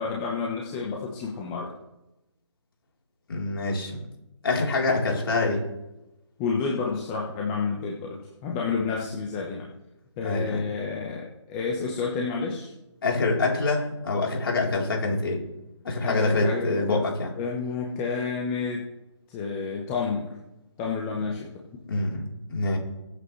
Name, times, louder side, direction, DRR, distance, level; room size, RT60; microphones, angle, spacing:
voice 1, 0.0-1.7 6.4-9.7 10.2-12.7 16.0-17.1 17.4-18.9 19.3-20.3 20.8-21.6, left 5 dB, 15° left, -2 dB, 1.2 m, -30 dB
voice 2, 3.3-4.0 4.4-5.7 10.2-10.6 13.0-15.4 15.8-17.3 21.9-22.8, left 3 dB, 50° left, -1 dB, 4.0 m, -25 dB
21.5 x 8.2 x 3.3 m, 0.95 s
hypercardioid pair, 160°, 16 cm